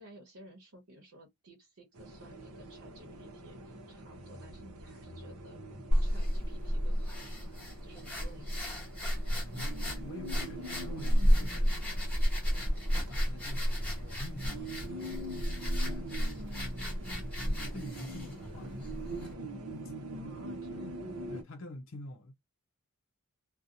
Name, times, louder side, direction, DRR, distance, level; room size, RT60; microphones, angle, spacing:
voice 1, 0.0-5.6 6.0-7.4 7.8-8.8 20.1-20.9, right 1 dB, 70° right, 1.1 m, -55 dB
sound 1, 1.9-21.4, right 1 dB, 90° right, 0.8 m, -44 dB
sound 2, 5.9-19.3, equal, 5° left, 1.0 m, -32 dB
voice 2, 9.5-16.8 17.6-19.0 19.8-20.3 20.7-20.8 21.3-22.3, left 1 dB, 60° left, 0.5 m, -49 dB
2.7 x 2.2 x 2.4 m
head